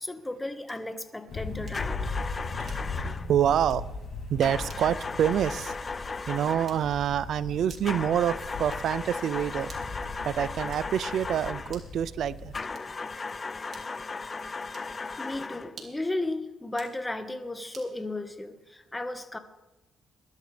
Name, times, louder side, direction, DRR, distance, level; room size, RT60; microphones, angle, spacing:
voice 1, 0.0-2.0 15.2-19.4, left 2 dB, 15° left, 8 dB, 1.4 m, -34 dB
sound 1, 0.6-1.0 1.7-2.0 2.6-3.1 3.6-3.9 4.7-5.0 5.7-6.0 6.7-7.1 7.7-8.1 8.7-9.0 9.7-10.1 10.7-11.1 11.7-12.0 12.7-13.1 13.7-14.1 14.7-15.0 15.7-16.1 16.7-17.0 17.7-18.0, right 5 dB, 50° right, 3.0 m, -52 dB
sound 2, 1.3-12.6, left 3 dB, 60° left, 3.1 m, -38 dB
sound 3, 1.7-3.3 4.4-6.9 7.8-11.8 12.5-15.8, left 4 dB, 30° left, 0.4 m, -36 dB
voice 2, 2.6-3.9 4.3-5.7 6.3-9.7 10.2-12.5, right 9 dB, 70° right, 18 dB, 0.5 m, -27 dB
22.0 x 12.0 x 3.4 m, 1.1 s
cardioid pair, 90°, 0 cm